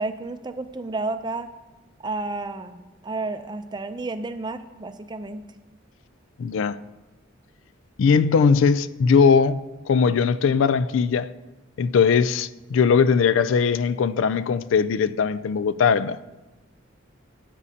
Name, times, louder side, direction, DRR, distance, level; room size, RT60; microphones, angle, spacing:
voice 1, 0.0-1.5 2.0-5.4, right 3 dB, 20° right, 0.5 m, -31 dB
voice 2, 6.4-6.8 8.0-11.3 11.8-16.2, left 6 dB, 80° left, 0.4 m, -20 dB
13.5 x 8.4 x 2.8 m
head